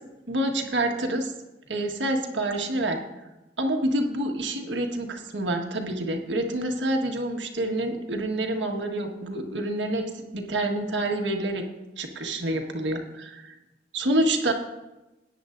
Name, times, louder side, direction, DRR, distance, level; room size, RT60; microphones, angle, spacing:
voice 1, 0.3-1.3 1.7-3.0 3.6-11.6 12.0-13.6 13.9-14.5, right 1 dB, 80° right, 2 dB, 1.6 m, -27 dB
17.5 x 9.8 x 2.6 m, 1.0 s
head